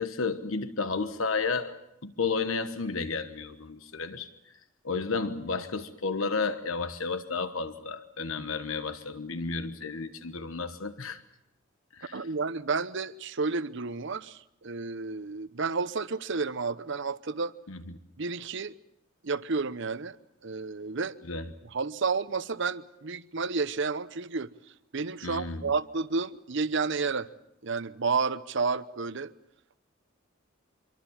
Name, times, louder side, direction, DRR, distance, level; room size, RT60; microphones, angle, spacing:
voice 1, 0.0-1.8 2.0-4.3 4.8-11.2 12.0-12.3 17.7-17.8 21.3-21.5 25.2-25.7, left 4 dB, 85° left, 1.3 m, -32 dB
voice 2, 12.1-17.5 18.2-18.8 19.2-20.2 20.4-21.2 21.6-24.5 24.9-27.3 27.6-29.3, right 4 dB, 65° right, 0.9 m, -31 dB
26.0 x 23.5 x 7.3 m
head